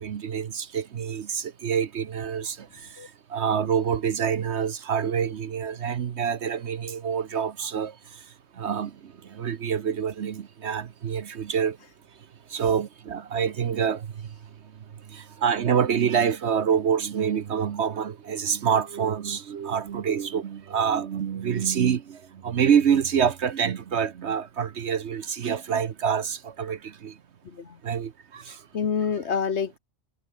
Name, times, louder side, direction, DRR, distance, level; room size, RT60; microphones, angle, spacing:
voice 1, 0.0-8.2 8.6-11.8 12.5-14.3 15.1-27.1 27.8-28.6, right 7 dB, 55° right, 1.1 m, -26 dB
voice 2, 27.4-27.8 28.7-29.8, left 6 dB, 55° left, 1.3 m, -27 dB
omnidirectional pair, 1.4 m